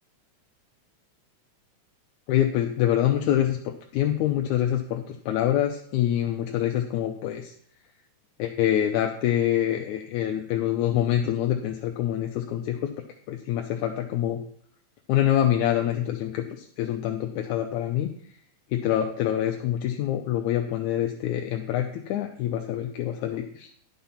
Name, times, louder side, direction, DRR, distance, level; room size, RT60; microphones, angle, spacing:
voice 1, 2.3-7.5 8.4-12.9 13.3-14.4 15.1-18.1 18.7-23.7, left 11 dB, 85° left, 3 dB, 2.1 m, -25 dB
10.5 x 5.6 x 5.7 m, 0.62 s
omnidirectional pair, 3.4 m